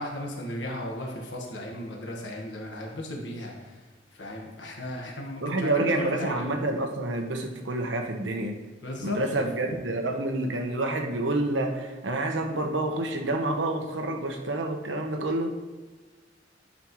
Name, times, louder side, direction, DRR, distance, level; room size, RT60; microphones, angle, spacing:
voice 1, 0.0-3.7 4.1-6.5 8.8-9.2, left 1 dB, 70° left, 0 dB, 1.5 m, -35 dB
voice 2, 5.4-8.6 9.0-15.5, right 2 dB, 85° right, 4 dB, 1.1 m, -28 dB
11.0 x 7.2 x 3.1 m, 1.3 s
head